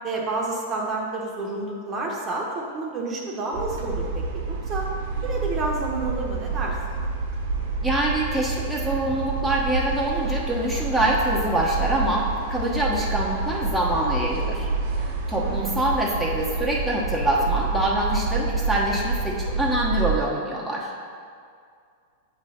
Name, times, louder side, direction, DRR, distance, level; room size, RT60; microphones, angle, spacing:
voice 1, 0.0-4.9 5.2-6.8 15.4-15.9, right 2 dB, 30° right, -1 dB, 1.1 m, -30 dB
sound 1, 3.5-20.2, right 3 dB, 65° right, 1.2 m, -28 dB
voice 2, 7.8-14.7 15.0-20.9, right 1 dB, ahead, -6 dB, 1.0 m, -25 dB
7.3 x 3.3 x 5.5 m, 2.2 s
hypercardioid pair, 115°, 0 cm